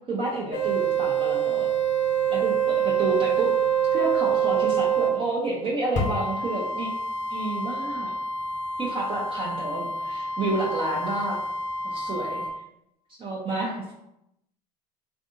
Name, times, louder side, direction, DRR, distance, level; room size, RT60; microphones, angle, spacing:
voice 1, 0.1-1.7 2.3-3.5 3.9-6.9 7.3-8.1 8.8-11.4 11.8-12.5 13.2-13.9, right 2 dB, 25° right, -3 dB, 0.6 m, -29 dB
sound 1, 0.5-5.2 5.9-12.5, right 6 dB, 35° left, 0.7 m, -26 dB
3.3 x 2.6 x 2.5 m, 0.85 s
figure-of-eight pair, 75°, 21 cm